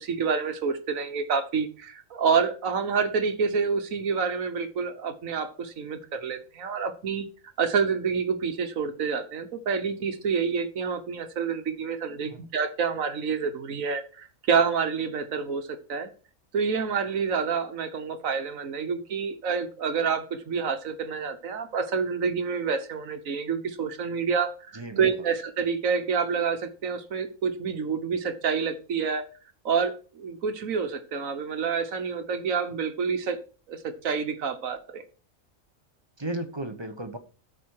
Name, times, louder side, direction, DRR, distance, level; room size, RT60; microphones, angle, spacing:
voice 1, 0.0-7.3 7.6-16.1 16.5-29.3 29.6-33.4 33.7-35.0, right 6 dB, 75° right, 1.5 m, -28 dB
voice 2, 24.7-25.1 36.2-37.2, right 1 dB, 20° right, 0.9 m, -34 dB
13.0 x 5.0 x 4.7 m
omnidirectional pair, 1.4 m